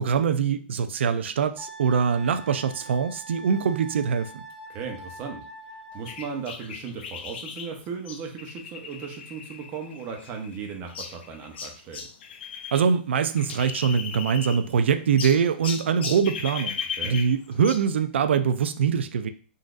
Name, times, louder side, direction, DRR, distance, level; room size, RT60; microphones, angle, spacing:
voice 1, 0.0-4.4 12.7-19.3, right 7 dB, 90° right, 0.3 m, -23 dB
Wind instrument woodwind instrument, 1.6-6.4, right 2 dB, 15° left, 1.0 m, -44 dB
voice 2, 4.7-5.5 5.9-12.1 17.0-17.2, right 5 dB, 35° right, 0.8 m, -36 dB
sound 1, 6.1-12.9 13.1-14.8 15.2-17.9, left 6 dB, 70° left, 0.5 m, -37 dB
3.8 x 2.6 x 2.5 m
hypercardioid pair, 145°, 6 cm